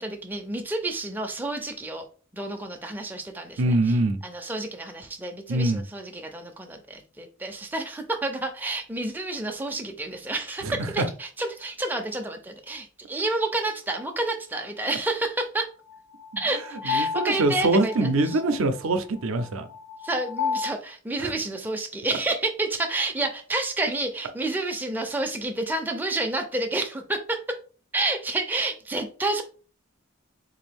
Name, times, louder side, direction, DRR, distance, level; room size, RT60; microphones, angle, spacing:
voice 1, 0.0-2.1 2.3-4.0 4.2-10.7 10.9-15.7 16.4-18.4 20.0-27.4 27.9-29.4, right 2 dB, 10° right, 0.4 m, -29 dB
voice 2, 3.6-4.2 5.5-5.8 10.6-10.7 16.8-19.7 21.2-21.3, right 2 dB, 70° right, 0.5 m, -23 dB
sound 1, 13.9-14.0 15.9-20.7, left 6 dB, 85° left, 1.1 m, -32 dB
3.7 x 2.6 x 3.4 m
head